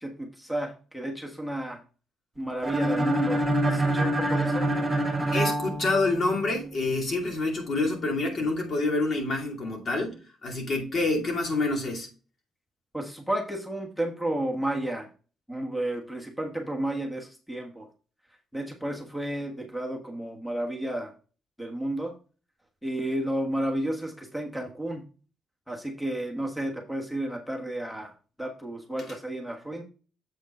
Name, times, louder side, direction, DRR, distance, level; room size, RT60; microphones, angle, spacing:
voice 1, 0.0-1.8 2.4-4.7 12.9-15.1 15.5-17.9 18.5-21.1 21.6-22.1 22.8-25.0 25.7-28.1 28.4-29.8, right 1 dB, 5° left, 1.4 m, -32 dB
sound 1, 2.6-6.5, right 1 dB, 15° right, 2.2 m, -26 dB
voice 2, 5.3-12.1, left 2 dB, 50° left, 2.5 m, -27 dB
7.7 x 5.0 x 4.2 m
cardioid pair, 90°, 0 cm